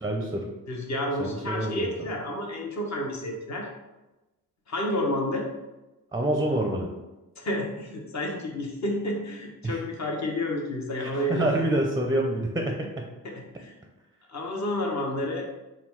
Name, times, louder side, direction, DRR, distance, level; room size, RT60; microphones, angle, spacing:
voice 1, 0.0-0.5 1.2-1.9 6.1-6.9 9.6-9.8 11.0-13.0, right 1 dB, 10° right, 1 dB, 0.5 m, -27 dB
voice 2, 0.7-3.7 4.7-5.5 7.4-11.6 13.2-13.7 14.3-15.5, left 1 dB, 50° left, 0 dB, 1.0 m, -30 dB
3.8 x 2.3 x 4.5 m, 1.0 s
cardioid pair, 80°, 34 cm